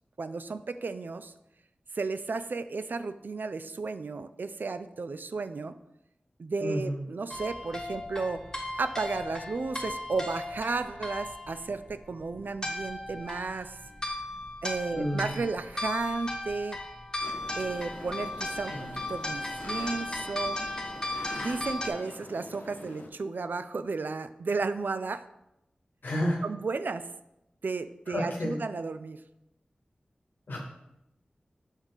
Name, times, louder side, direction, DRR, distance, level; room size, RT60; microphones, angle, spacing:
voice 1, 0.2-1.3 1.9-5.8 6.4-8.4 8.8-13.8 14.6-16.8 17.6-20.7 21.4-25.2 26.4-27.1 27.6-29.2, right 4 dB, 75° right, 12 dB, 0.4 m, -33 dB
voice 2, 6.6-7.0 14.9-15.4 18.7-18.9 26.0-26.4 28.1-28.6 30.5-30.6, equal, 90° left, -2 dB, 1.1 m, -30 dB
sound 1, 7.3-21.9, left 2 dB, 20° left, 1.2 m, -37 dB
sound 2, 17.2-23.1, left 2 dB, 70° left, 0.8 m, -45 dB
6.3 x 3.5 x 5.6 m, 0.88 s
cardioid pair, 40°, 3 cm